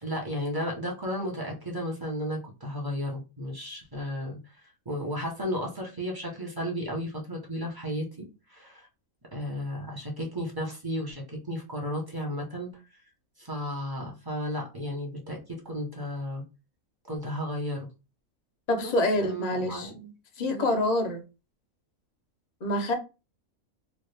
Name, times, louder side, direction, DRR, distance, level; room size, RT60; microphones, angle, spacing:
voice 1, 0.0-4.4 4.9-8.9 9.3-12.7 13.4-16.4 17.1-17.9 18.8-18.9 19.2-20.1 20.5-20.9, equal, 20° right, 0.6 m, -34 dB
voice 2, 18.7-19.9 20.4-21.2 22.6-22.9, left 1 dB, 50° left, 0.5 m, -26 dB
2.8 x 2.4 x 3.2 m
omnidirectional pair, 1.5 m